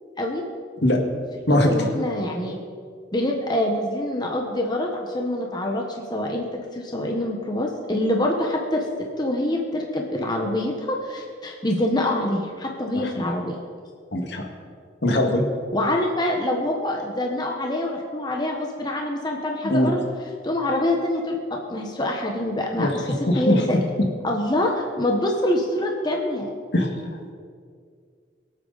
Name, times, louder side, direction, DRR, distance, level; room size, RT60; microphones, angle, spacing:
voice 1, 1.5-2.5 3.1-6.5 6.7-8.8 9.2-13.5 15.7-20.0 20.4-23.8 24.2-26.5, left 1 dB, 20° left, 1 dB, 1.1 m, -25 dB
voice 2, 12.9-13.2 14.1-14.5 15.0-15.4 19.6-19.9 22.8-23.0 23.3-23.6 26.7-26.9, left 1 dB, 65° left, 2 dB, 1.9 m, -21 dB
23.5 x 8.5 x 4.1 m, 2.1 s
head